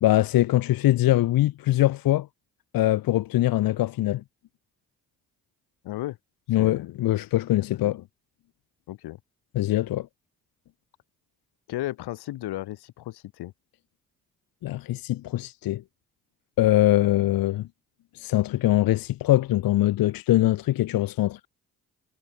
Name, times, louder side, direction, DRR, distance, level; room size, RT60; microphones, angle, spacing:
voice 1, 0.0-2.3 2.7-4.2 6.5-8.0 9.5-10.1 14.6-15.8 16.6-17.7 18.1-21.5, left 15 dB, 65° left, 0.6 m, -22 dB
voice 2, 5.8-6.2 6.6-7.0 7.6-8.1 8.9-9.2 11.7-13.5, left 15 dB, 80° left, 1.2 m, -35 dB
supercardioid pair, 45°, 39 cm